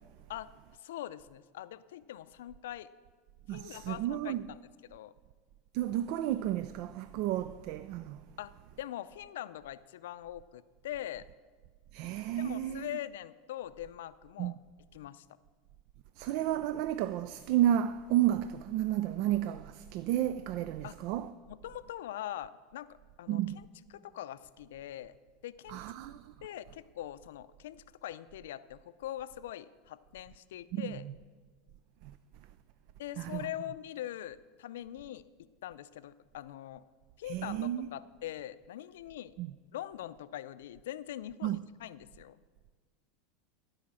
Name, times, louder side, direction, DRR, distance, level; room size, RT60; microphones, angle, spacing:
voice 1, 0.8-2.9 3.5-5.1 8.4-11.2 12.4-14.6 14.9-15.3 20.8-21.0 21.5-23.7 23.9-25.2 25.4-25.8 26.4-31.0 33.0-35.3 35.6-36.8 37.2-39.3 39.7-42.4, left 12 dB, 85° left, 0.4 m, -43 dB
voice 2, 3.5-4.4 5.7-8.2 11.9-12.9 14.4-14.6 16.2-21.3 23.3-23.6 25.7-26.3 30.7-30.9 32.0-32.1 33.2-33.4 37.3-37.9 39.4-39.5 41.4-41.6, right 12 dB, 60° right, 0.3 m, -32 dB
14.5 x 5.0 x 7.5 m
supercardioid pair, 120°, 0 cm